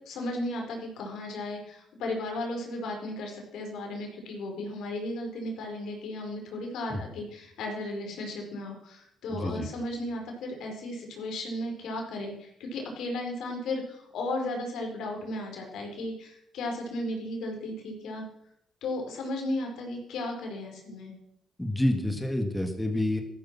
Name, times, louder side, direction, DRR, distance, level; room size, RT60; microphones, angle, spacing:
voice 1, 0.0-18.2 18.8-21.1, left 1 dB, 80° left, 2 dB, 4.8 m, -35 dB
voice 2, 9.3-9.7 21.6-23.2, left 1 dB, 5° left, 4 dB, 2.1 m, -28 dB
14.0 x 12.5 x 5.9 m, 0.73 s
cardioid pair, 90°, 0 cm